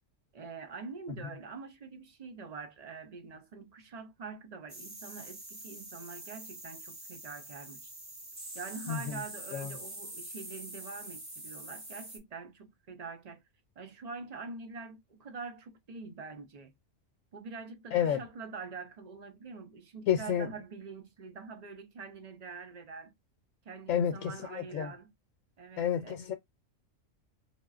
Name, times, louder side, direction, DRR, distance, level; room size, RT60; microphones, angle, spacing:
voice 1, 0.3-7.9 8.5-13.4 13.8-16.7 17.3-23.1 23.6-25.1 25.6-26.2, right 4 dB, 55° right, 0.4 m, -45 dB
sound 1, 4.7-12.2, right 1 dB, 15° right, 0.9 m, -45 dB
voice 2, 8.9-9.2 9.5-9.8 17.9-18.2 20.1-20.5 23.9-24.9 25.8-26.3, left 9 dB, 90° left, 1.0 m, -30 dB
4.2 x 2.1 x 2.3 m
omnidirectional pair, 1.3 m